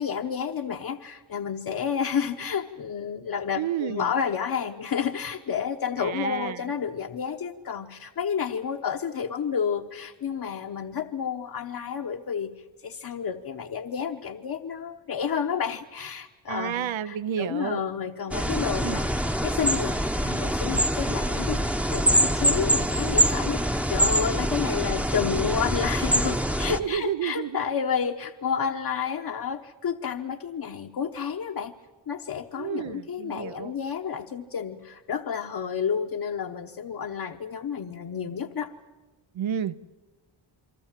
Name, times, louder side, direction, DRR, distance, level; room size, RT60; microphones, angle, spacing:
voice 1, 0.0-12.5 12.8-31.7 32.1-38.7, left 7 dB, 50° left, 3 dB, 1.0 m, -30 dB
voice 2, 3.6-4.1 6.0-6.6 16.5-17.8 18.8-19.0 26.8-27.6 32.5-33.7 39.3-39.8, right 9 dB, 75° right, 13 dB, 0.7 m, -30 dB
sound 1, 18.3-26.8, right 1 dB, 5° right, 0.8 m, -24 dB
27.5 x 24.0 x 7.4 m, 1.2 s
wide cardioid pair, 155°, 47 cm